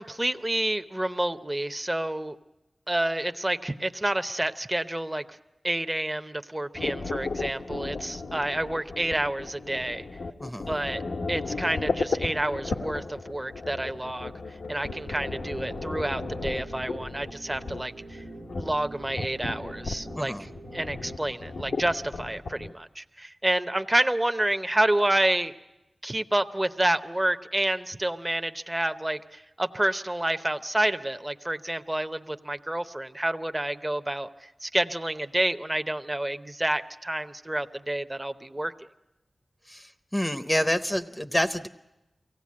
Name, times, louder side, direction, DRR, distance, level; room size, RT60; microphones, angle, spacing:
voice 1, 0.0-2.4 2.9-5.2 5.6-10.0 10.7-11.0 11.3-14.3 14.7-18.2 18.6-20.3 20.7-25.5 26.0-34.3 34.6-38.7, right 1 dB, 20° right, 9 dB, 0.7 m, -29 dB
sound 1, 6.7-22.7, left 3 dB, 90° left, 0.9 m, -35 dB
voice 2, 10.4-10.7 20.2-20.5 39.7-41.7, equal, 10° left, 9 dB, 0.7 m, -28 dB
sound 2, 14.9-21.2, right 2 dB, 85° right, 0.9 m, -45 dB
23.5 x 16.5 x 8.5 m, 0.98 s
wide cardioid pair, 60°, 0 cm